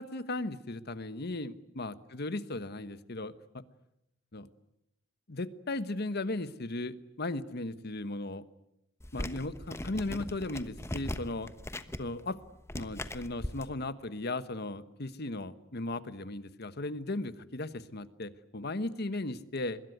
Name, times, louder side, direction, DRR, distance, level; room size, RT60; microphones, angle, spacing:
voice 1, 0.0-3.6 4.3-4.5 5.3-8.4 9.1-11.5 12.0-12.4 12.7-19.8, left 2 dB, 55° left, 13 dB, 1.2 m, -36 dB
sound 1, 9.0-13.6, left 1 dB, 15° left, 1.1 m, -39 dB
25.0 x 21.5 x 9.4 m, 0.84 s
head